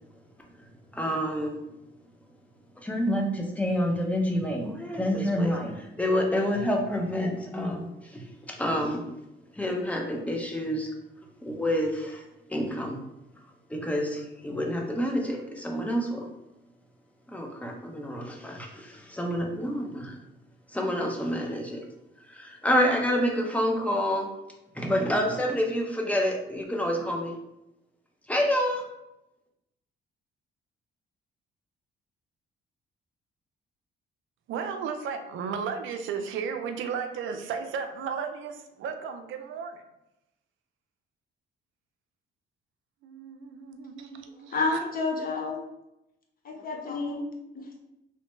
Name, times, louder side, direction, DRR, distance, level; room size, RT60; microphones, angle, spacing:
voice 1, 0.9-1.6 2.8-9.0 9.5-10.9 11.4-13.0 13.7-16.3 17.3-20.2 20.7-21.8 22.3-24.3 24.7-27.3 28.3-28.9, equal, 5° left, 1 dB, 0.6 m, -28 dB
voice 2, 34.5-39.8 43.0-44.8, right 6 dB, 80° right, 6 dB, 0.4 m, -34 dB
voice 3, 44.5-45.6 46.4-47.3 47.5-47.8, left 3 dB, 45° left, 1 dB, 0.7 m, -30 dB
3.1 x 2.1 x 3.0 m, 0.89 s
cardioid pair, 90°, 20 cm